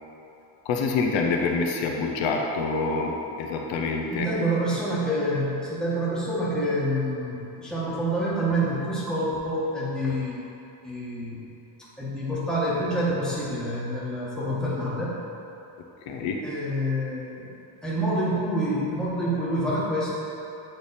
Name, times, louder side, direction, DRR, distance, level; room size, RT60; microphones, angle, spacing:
voice 1, 0.7-4.3 16.1-16.4, left 4 dB, 75° left, 1 dB, 0.8 m, -26 dB
voice 2, 4.1-10.4 10.8-11.4 12.0-15.1 16.4-17.5 17.8-20.1, right 1 dB, ahead, -9 dB, 1.4 m, -27 dB
8.9 x 3.4 x 4.2 m, 3.0 s
cardioid pair, 140°, 45 cm